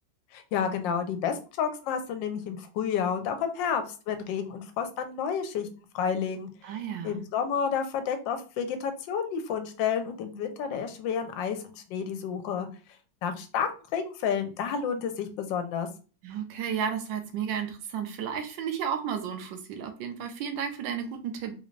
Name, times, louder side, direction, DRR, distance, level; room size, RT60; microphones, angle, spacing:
voice 1, 0.3-5.7 5.9-6.5 7.0-12.7 13.2-15.9, left 7 dB, 85° left, 8 dB, 1.3 m, -30 dB
voice 2, 6.6-7.2 16.2-21.5, right 7 dB, 90° right, 6 dB, 1.3 m, -33 dB
3.8 x 2.5 x 3.1 m, 0.36 s
omnidirectional pair, 2.0 m